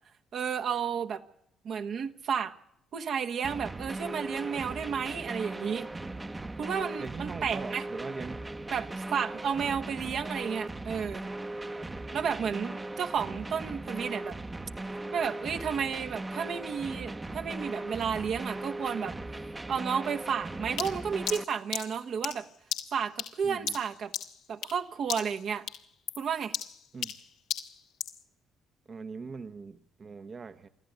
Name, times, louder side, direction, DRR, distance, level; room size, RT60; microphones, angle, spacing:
voice 1, 0.3-1.2 1.6-2.5 2.9-5.9 6.6-7.8 8.7-11.3 12.1-14.4 15.1-19.1 19.7-22.5 22.9-24.1 24.5-25.7 26.2-26.6, right 7 dB, 60° right, 6 dB, 1.4 m, -32 dB
sound 1, 3.4-21.4, right 2 dB, 20° right, 1.0 m, -38 dB
voice 2, 7.0-8.4 23.4-23.8 26.9-27.1 28.9-30.7, right 4 dB, 45° right, 8 dB, 1.1 m, -41 dB
sound 2, 20.8-24.8 25.1-25.4 25.7-28.2, left 9 dB, 85° left, 1.8 m, -36 dB
25.0 x 14.0 x 8.2 m, 0.76 s
supercardioid pair, 70°, 0 cm